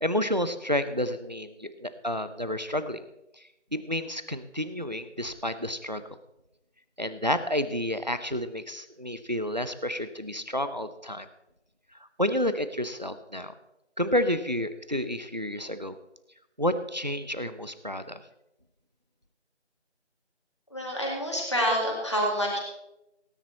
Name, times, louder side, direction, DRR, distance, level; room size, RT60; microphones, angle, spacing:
voice 1, 0.0-3.0 3.7-6.0 7.0-11.3 12.2-13.5 14.0-16.0 16.6-18.2, left 1 dB, 40° right, 12 dB, 0.7 m, -30 dB
voice 2, 20.7-22.6, equal, 25° left, -2 dB, 2.3 m, -27 dB
17.5 x 9.7 x 4.1 m, 0.90 s
figure-of-eight pair, 175°, 35 cm